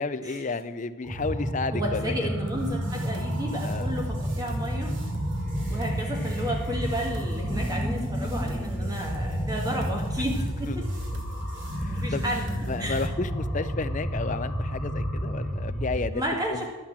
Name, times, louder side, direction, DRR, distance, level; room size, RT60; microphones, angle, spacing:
voice 1, 0.0-2.1 3.7-3.9 10.7-10.8 11.8-12.2 12.7-16.2 16.5-16.7, left 3 dB, 35° left, 12 dB, 0.4 m, -32 dB
sound 1, 1.0-16.0, equal, ahead, 1.5 m, -30 dB
voice 2, 1.7-4.9 5.7-10.9 11.9-12.5 12.8-13.1 16.1-16.7, equal, 15° right, 0 dB, 1.9 m, -32 dB
sound 2, 2.5-13.1, right 2 dB, 55° right, 1.3 m, -45 dB
11.5 x 5.9 x 7.3 m, 1.3 s
head